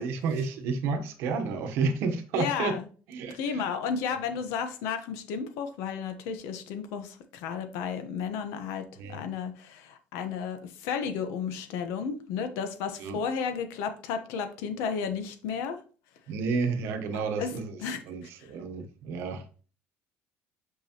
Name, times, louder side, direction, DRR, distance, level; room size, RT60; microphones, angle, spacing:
voice 1, 0.0-2.8 3.1-3.7 9.0-9.2 13.0-13.2 16.3-17.8 18.1-19.6, right 4 dB, 60° right, 7 dB, 1.0 m, -31 dB
voice 2, 2.4-2.8 3.3-15.8 17.4-17.5 17.8-18.0, left 6 dB, 80° left, 8 dB, 1.0 m, -33 dB
6.1 x 5.7 x 2.9 m, 0.39 s
cardioid pair, 170°, 5 cm